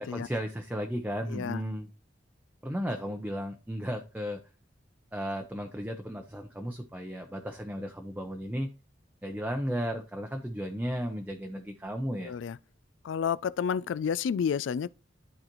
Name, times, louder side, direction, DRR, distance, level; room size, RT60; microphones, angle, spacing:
voice 1, 0.1-1.9 2.6-4.4 5.1-8.7 9.2-12.3, equal, 10° right, 0.6 m, -34 dB
voice 2, 1.3-1.6 12.3-12.6 13.0-14.9, left 7 dB, 80° left, 0.3 m, -30 dB
11.5 x 4.0 x 3.0 m
head